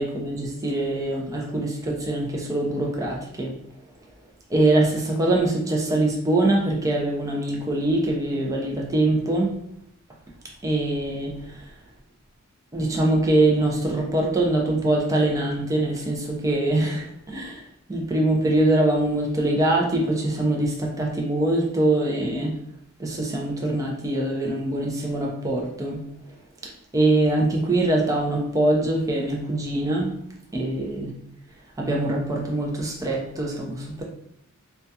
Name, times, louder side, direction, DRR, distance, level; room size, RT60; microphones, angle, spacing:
voice 1, 0.0-3.5 4.5-9.5 10.6-11.7 12.7-17.6 17.9-22.5 23.0-26.0 26.6-30.1 30.5-31.1 31.8-34.0, right 2 dB, 15° right, -1 dB, 0.4 m, -23 dB
2.3 x 2.2 x 2.6 m, 0.73 s
head